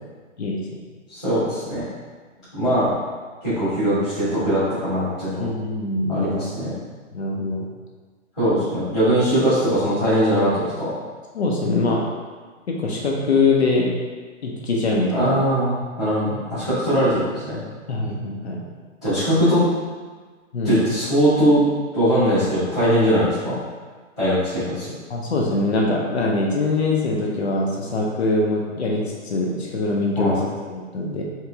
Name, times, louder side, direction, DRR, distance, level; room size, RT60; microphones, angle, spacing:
voice 1, 1.1-1.8 2.5-2.9 3.4-5.5 6.1-6.7 8.4-10.9 15.1-17.2 17.5-17.6 19.0-19.6 20.6-21.6 21.9-23.5 24.2-24.9 30.2-30.4, equal, ahead, -20 dB, 0.8 m, -20 dB
voice 2, 5.4-6.3 7.1-7.7 11.3-12.1 12.7-13.9 14.4-15.4 17.9-18.6 20.5-20.8 25.1-31.2, left 2 dB, 55° left, -2 dB, 0.7 m, -23 dB
3.7 x 3.0 x 3.4 m, 1.4 s
hypercardioid pair, 180°, 39 cm